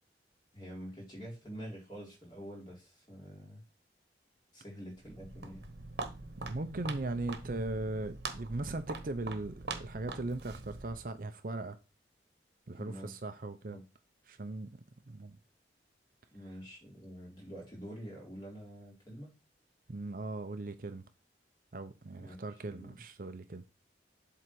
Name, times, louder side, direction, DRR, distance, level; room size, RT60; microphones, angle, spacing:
voice 1, 0.5-3.6 4.5-5.7 12.7-13.1 13.7-13.8 16.3-19.4 22.1-22.4 22.7-23.0, equal, 25° left, 4.0 m, -47 dB
Walk footsteps, 5.0-11.1, right 3 dB, 70° right, 1.1 m, -43 dB
voice 2, 6.2-11.8 12.7-13.8 14.3-15.4 19.9-21.0 21.7-23.6, right 2 dB, 50° right, 0.6 m, -39 dB
7.7 x 3.9 x 6.1 m
head